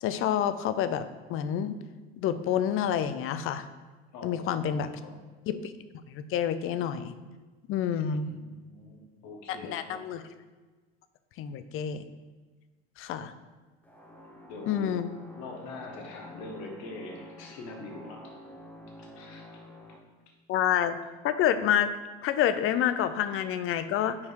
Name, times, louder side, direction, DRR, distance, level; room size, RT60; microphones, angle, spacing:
voice 1, 0.0-1.8 2.2-3.7 4.2-4.9 5.5-5.7 6.1-7.1 7.7-8.3 9.5-10.2 11.4-12.0 13.0-13.3 14.7-15.1 20.5-21.0 21.2-21.9 22.2-24.2, left 9 dB, 40° left, 12 dB, 0.5 m, -28 dB
voice 2, 4.1-5.1 8.3-10.0 14.2-14.9 15.4-18.4 19.0-19.6, left 2 dB, 60° left, 2 dB, 1.4 m, -44 dB
sound 1, 13.8-20.0, left 1 dB, 5° left, 1.0 m, -49 dB
5.6 x 4.7 x 4.6 m, 1.3 s
hypercardioid pair, 85°, 32 cm